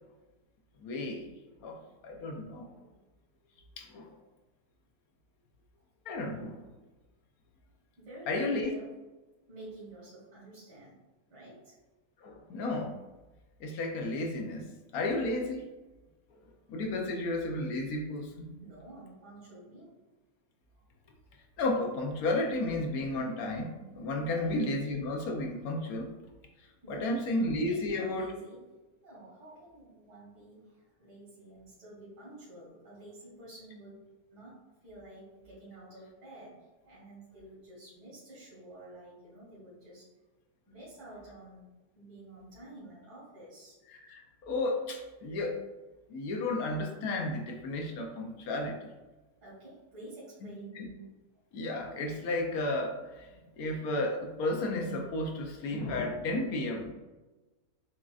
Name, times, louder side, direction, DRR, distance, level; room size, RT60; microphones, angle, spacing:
voice 1, 0.8-1.3 1.6-2.8 3.8-4.1 6.1-6.7 8.3-8.7 12.2-13.0 13.6-15.6 16.7-18.5 21.6-26.2 26.9-28.3 43.9-45.6 46.1-48.9 50.4-50.9 51.5-56.9, left 2 dB, 70° left, 1 dB, 1.1 m, -33 dB
voice 2, 8.0-8.9 9.5-11.0 11.3-11.8 18.6-19.9 24.3-24.5 26.8-27.2 27.6-28.6 29.0-34.0 34.3-40.1 40.7-41.6 42.0-43.8 49.4-50.8, right 1 dB, 75° right, -8 dB, 1.9 m, -50 dB
7.3 x 2.5 x 2.4 m, 1.2 s
omnidirectional pair, 1.7 m